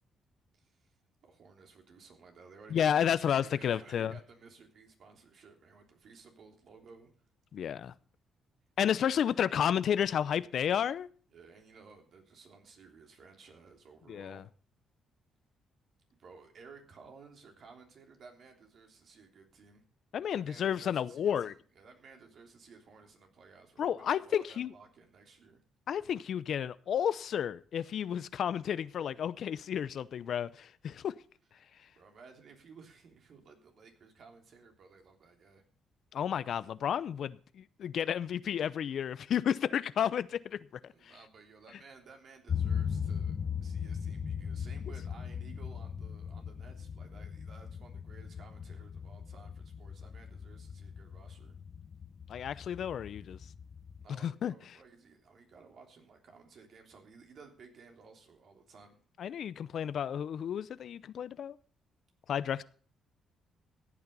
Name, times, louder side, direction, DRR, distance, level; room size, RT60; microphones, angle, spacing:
voice 1, 0.5-0.9 1.2-7.1 8.8-9.3 11.3-14.4 16.2-19.8 20.3-25.6 31.6-35.6 40.9-51.6 54.0-59.0, right 4 dB, 60° right, 3.2 m, -56 dB
voice 2, 2.7-4.1 7.5-7.9 8.8-11.1 14.1-14.4 20.1-21.5 23.8-24.7 25.9-31.1 36.1-41.1 52.3-53.4 54.2-54.5 59.2-61.6 62.3-62.6, left 9 dB, 65° left, 0.6 m, -32 dB
sound 1, 42.5-54.1, left 7 dB, 45° left, 1.1 m, -39 dB
15.0 x 8.7 x 5.4 m
cardioid pair, 90°, 0 cm